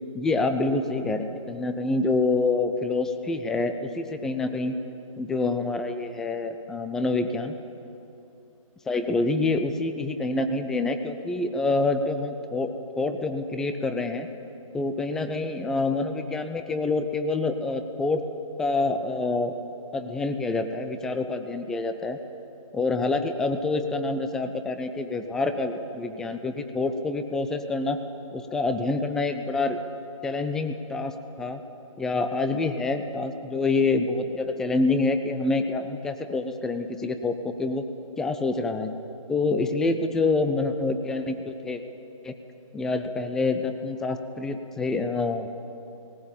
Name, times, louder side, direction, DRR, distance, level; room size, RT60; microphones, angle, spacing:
voice 1, 0.1-4.8 5.2-7.6 8.9-14.3 14.7-18.2 18.6-19.5 19.9-22.2 22.7-28.0 28.3-29.8 30.2-31.6 32.0-37.9 38.2-38.9 39.3-41.8 42.2-42.3 42.7-45.5, left 3 dB, 5° left, 8 dB, 0.4 m, -27 dB
18.5 x 18.0 x 8.7 m, 2.8 s
hypercardioid pair, 150°, 18 cm